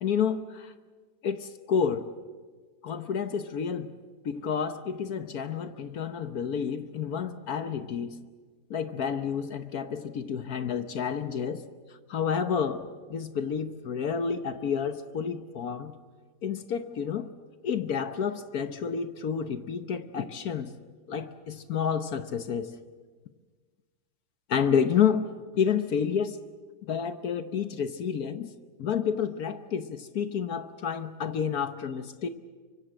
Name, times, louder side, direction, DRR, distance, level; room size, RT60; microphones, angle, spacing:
voice 1, 0.0-0.7 1.2-2.1 2.8-3.9 4.2-8.2 8.7-11.6 12.1-15.9 16.4-17.3 17.6-20.7 21.1-22.7 24.5-25.3 25.5-26.4 26.9-28.5 28.8-32.3, left 7 dB, 65° left, 10 dB, 1.4 m, -29 dB
24.5 x 24.0 x 7.7 m, 1.4 s
omnidirectional pair, 1.8 m